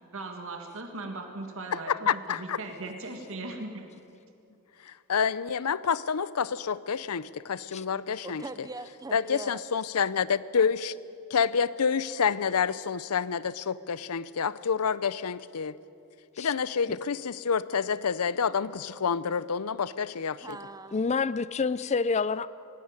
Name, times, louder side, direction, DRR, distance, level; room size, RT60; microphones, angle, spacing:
voice 1, 0.1-3.9, right 2 dB, 60° right, 3 dB, 1.9 m, -38 dB
voice 2, 1.7-2.6 4.8-8.4 9.1-10.9 11.3-15.8 16.4-20.6, left 6 dB, 85° left, 18 dB, 0.6 m, -28 dB
voice 3, 8.2-9.6 20.4-21.0, right 2 dB, 15° right, 11 dB, 0.7 m, -41 dB
voice 4, 20.9-22.5, left 4 dB, 30° left, 17 dB, 0.4 m, -27 dB
18.5 x 15.5 x 9.7 m, 2.7 s
head